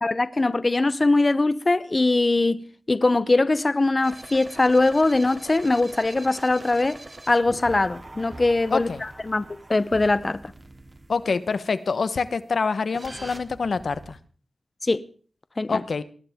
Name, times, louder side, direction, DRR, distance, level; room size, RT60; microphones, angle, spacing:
voice 1, 0.0-7.0 7.3-9.4 9.7-10.4 14.8-15.0 15.6-15.8, left 2 dB, 40° left, 0.7 m, -21 dB
sound 1, 4.0-11.5 12.9-14.1, right 2 dB, 35° right, 2.7 m, -43 dB
voice 2, 8.7-9.0 11.1-14.2 15.7-16.0, left 4 dB, 80° left, 1.0 m, -26 dB
21.5 x 18.5 x 3.6 m
wide cardioid pair, 65°, 0 cm